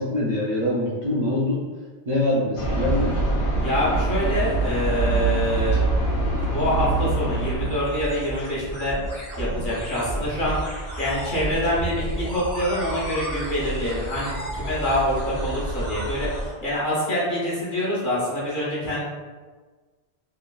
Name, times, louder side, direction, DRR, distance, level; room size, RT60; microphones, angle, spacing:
voice 1, 0.0-1.6 2.1-3.2, left 1 dB, 55° right, -6 dB, 0.5 m, -24 dB
sound 1, 2.6-8.0, right 2 dB, 85° left, 1.2 m, -24 dB
voice 2, 3.6-5.8 6.4-9.0 9.4-19.0, left 1 dB, 50° left, -7 dB, 0.9 m, -26 dB
sound 2, 7.3-16.5, right 1 dB, 20° left, 0.6 m, -32 dB
2.9 x 2.4 x 2.2 m, 1.4 s
omnidirectional pair, 1.1 m